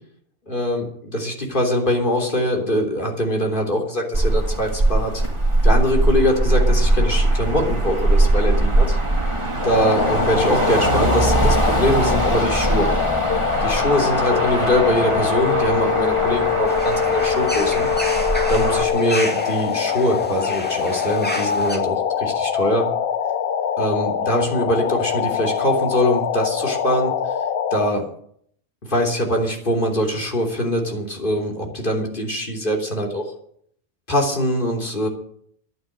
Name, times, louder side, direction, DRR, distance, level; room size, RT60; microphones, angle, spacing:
voice 1, 0.5-5.2 5.6-9.0 9.6-12.9 13.3-17.9 18.1-22.9 23.8-27.1 27.7-28.1 28.8-33.3 34.1-35.1, equal, 40° left, 1 dB, 3.5 m, -23 dB
Motor vehicle (road), 4.1-18.8, right 2 dB, 25° right, 2.2 m, -21 dB
sound 1, 9.6-27.9, left 7 dB, 55° left, 0.9 m, -23 dB
sound 2, 16.7-21.8, equal, 5° left, 2.3 m, -32 dB
11.0 x 9.4 x 9.9 m, 0.66 s
omnidirectional pair, 1.3 m